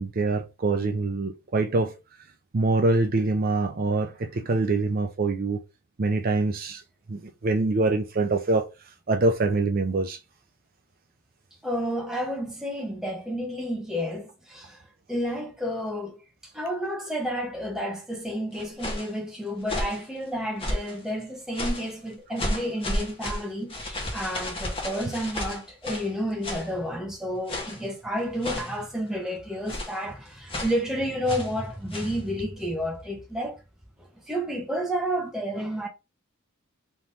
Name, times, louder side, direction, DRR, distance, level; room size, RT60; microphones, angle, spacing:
voice 1, 0.0-1.9 2.5-5.6 6.0-6.8 7.1-8.7 9.1-10.2, right 3 dB, 45° right, 0.5 m, -24 dB
voice 2, 11.6-14.8 15.1-16.2 16.5-33.6 34.3-35.9, equal, 5° right, 1.2 m, -31 dB
sound 1, 18.5-19.1 19.6-20.0 20.6-21.0 21.5-21.9 22.4-26.1 26.4-26.7 27.5-27.9 28.4-28.8 29.7-30.0 30.5-30.8 31.3-31.5 31.9-32.2, left 1 dB, 30° left, 1.2 m, -32 dB
3.6 x 3.0 x 4.0 m
head